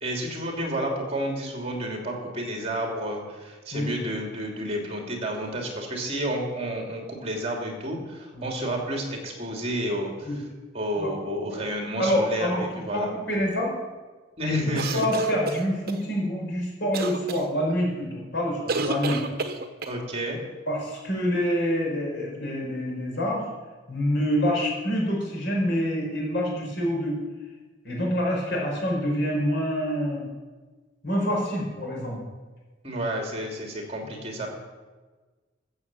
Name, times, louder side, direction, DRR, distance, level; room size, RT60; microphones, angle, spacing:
voice 1, 0.0-10.3 10.7-13.1 14.4-15.0 19.9-20.4 32.8-34.5, equal, 35° right, 1 dB, 2.9 m, -30 dB
voice 2, 12.0-12.6 12.9-13.7 14.4-14.6 14.9-19.2 20.7-23.4 23.9-27.2 27.8-30.3 31.0-32.2 34.3-34.4, equal, 65° left, -2 dB, 5.4 m, -26 dB
sound 1, 14.7-16.0 16.9-17.4 18.7-20.0, right 3 dB, 55° right, 1.1 m, -30 dB
14.5 x 7.2 x 7.7 m, 1.3 s
head